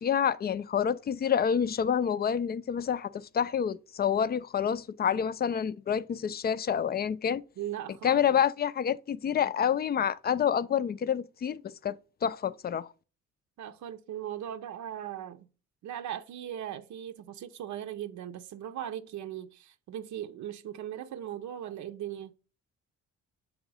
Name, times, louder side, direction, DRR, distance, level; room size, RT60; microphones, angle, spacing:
voice 1, 0.0-7.4 8.0-12.0 12.2-12.9, left 8 dB, 35° left, 0.4 m, -28 dB
voice 2, 7.6-8.4 13.6-15.5 15.8-22.3, right 11 dB, 70° right, 0.6 m, -39 dB
6.2 x 3.8 x 4.8 m
cardioid pair, 90°, 30 cm